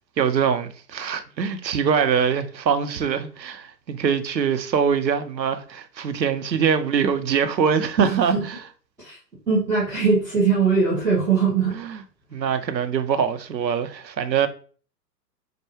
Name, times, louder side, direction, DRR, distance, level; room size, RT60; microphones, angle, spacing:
voice 1, 0.2-8.3 11.8-12.0 12.3-14.5, right 7 dB, 85° right, 0.7 m, -23 dB
voice 2, 8.0-8.4 9.0-9.2 9.5-11.8, right 5 dB, 5° right, 2.0 m, -21 dB
5.5 x 2.2 x 3.2 m
figure-of-eight pair, 120°, 50 cm